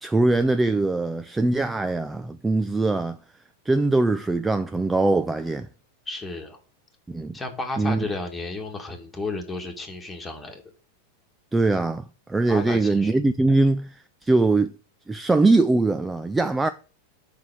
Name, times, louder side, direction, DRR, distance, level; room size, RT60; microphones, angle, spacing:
voice 1, 0.0-3.2 3.7-5.7 7.1-7.3 7.8-8.1 11.5-14.7 15.1-16.7, right 2 dB, 10° right, 0.4 m, -22 dB
voice 2, 6.1-6.6 7.3-10.6 12.5-13.1, left 2 dB, 10° left, 1.9 m, -33 dB
5.5 x 4.6 x 6.2 m
figure-of-eight pair, 90°, 0 cm